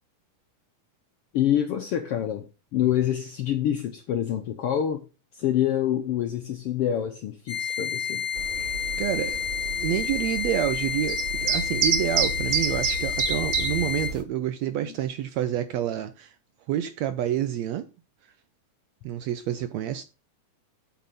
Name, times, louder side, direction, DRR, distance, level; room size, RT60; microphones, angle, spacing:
voice 1, 1.3-2.5 2.7-5.0 5.3-8.2, left 10 dB, 75° left, 1.4 m, -26 dB
sound 1, 7.5-14.1, left 8 dB, 30° left, 1.7 m, -30 dB
sound 2, 8.4-14.2, right 6 dB, 55° right, 1.4 m, -29 dB
voice 2, 9.0-16.3 16.7-17.9 19.0-20.1, right 11 dB, 75° right, 1.6 m, -28 dB
8.5 x 6.1 x 5.4 m
omnidirectional pair, 3.7 m